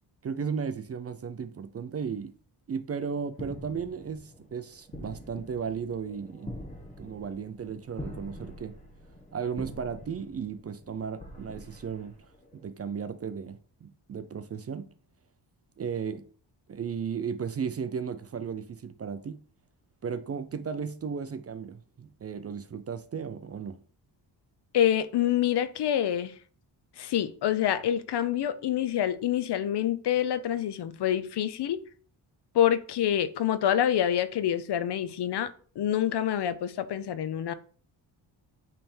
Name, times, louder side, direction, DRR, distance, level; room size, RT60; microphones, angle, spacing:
voice 1, 0.2-2.3 2.7-6.5 7.0-8.7 9.3-12.2 12.5-14.9 15.8-16.2 16.7-19.4 20.0-23.8, right 6 dB, 35° right, 0.4 m, -35 dB
sound 1, 3.3-12.6, left 1 dB, 15° left, 1.2 m, -45 dB
voice 2, 24.7-26.3 27.0-31.8 32.5-35.5 35.8-37.5, left 10 dB, 65° left, 0.7 m, -26 dB
8.9 x 3.4 x 4.4 m
wide cardioid pair, 145°, 44 cm